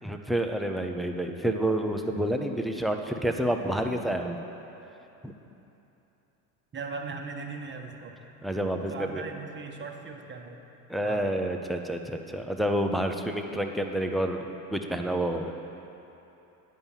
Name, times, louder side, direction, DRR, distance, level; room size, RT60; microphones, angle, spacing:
voice 1, 0.0-4.4 5.2-5.3 8.4-9.2 10.9-15.5, right 1 dB, ahead, 3 dB, 0.4 m, -29 dB
voice 2, 6.7-8.2 8.8-10.6 11.0-11.3, right 4 dB, 25° right, 3 dB, 1.0 m, -39 dB
9.7 x 5.3 x 7.2 m, 3.0 s
hypercardioid pair, 90°, 47 cm